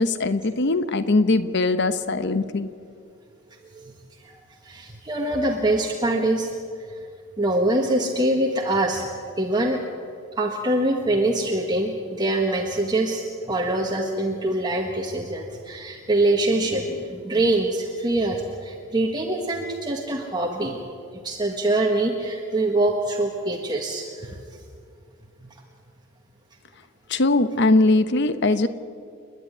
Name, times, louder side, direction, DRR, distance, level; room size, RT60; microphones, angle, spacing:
voice 1, 0.0-2.7 27.1-28.7, left 2 dB, 55° left, 11 dB, 1.0 m, -20 dB
voice 2, 4.2-6.5 7.4-9.1 9.4-9.8 10.4-20.8 21.2-24.4, right 1 dB, 20° right, 1 dB, 1.6 m, -24 dB
29.0 x 11.5 x 9.9 m, 2.4 s
head